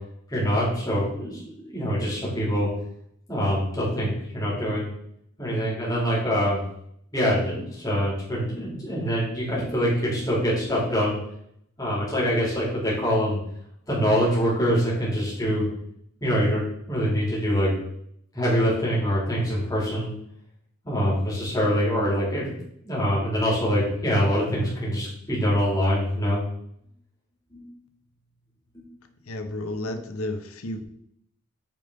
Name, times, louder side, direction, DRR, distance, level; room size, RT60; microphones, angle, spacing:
voice 1, 0.3-2.7 3.3-4.9 5.4-6.6 7.1-11.2 11.8-13.4 13.9-15.7 16.2-17.7 18.3-20.1 20.8-22.5 22.8-26.4 27.5-27.7 28.7-28.8, equal, 15° left, -7 dB, 3.6 m, -24 dB
voice 2, 29.3-30.8, left 1 dB, 80° left, 7 dB, 1.0 m, -32 dB
9.0 x 5.2 x 4.0 m, 0.71 s
head